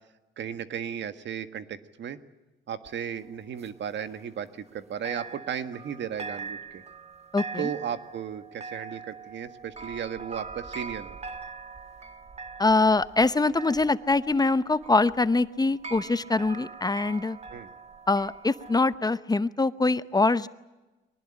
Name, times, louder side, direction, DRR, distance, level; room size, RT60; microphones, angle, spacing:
voice 1, 0.4-2.2 2.7-6.8 7.6-11.2 17.5-17.7, right 8 dB, 65° right, 10 dB, 1.6 m, -35 dB
sound 1, 2.9-4.8 5.0-18.9, right 4 dB, 30° right, 1.7 m, -42 dB
voice 2, 7.3-7.7 12.6-17.4 18.1-20.5, left 3 dB, 20° left, 14 dB, 0.8 m, -24 dB
23.5 x 19.5 x 9.9 m, 1.1 s
cardioid pair, 90°, 20 cm